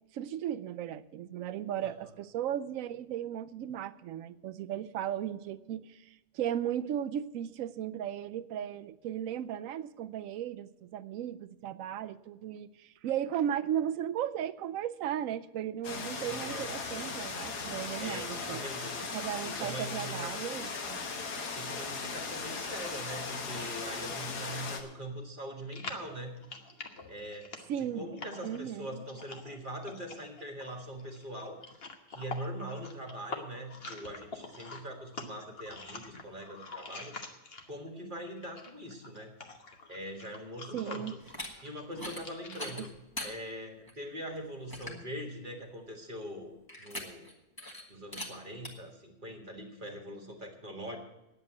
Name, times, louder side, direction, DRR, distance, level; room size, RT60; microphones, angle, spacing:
voice 1, 0.1-18.6 19.1-21.0 27.7-28.1 28.4-28.9 40.7-41.1 42.8-42.9, right 10 dB, 70° right, 14 dB, 0.9 m, -36 dB
sound 1, 15.8-24.8, left 4 dB, 90° left, 2.0 m, -38 dB
voice 2, 16.3-16.7 18.0-19.0 19.4-20.5 21.5-26.4 27.1-27.5 27.8-31.7 32.1-37.2 37.7-39.3 39.9-41.2 41.6-42.9 43.2-46.5 46.8-47.3 47.9-51.0, equal, 30° right, 2 dB, 1.9 m, -42 dB
sound 2, 25.7-37.9 38.2-42.9, left 3 dB, 40° left, 1.3 m, -46 dB
sound 3, 41.2-41.5 41.9-42.2 42.5-43.3 43.9-44.0 44.4-44.5 44.7-45.0 46.7-47.3 47.6-47.8 48.1-48.3 48.6-48.7, left 1 dB, 15° left, 1.7 m, -40 dB
9.7 x 8.1 x 9.5 m, 0.99 s
omnidirectional pair, 1.7 m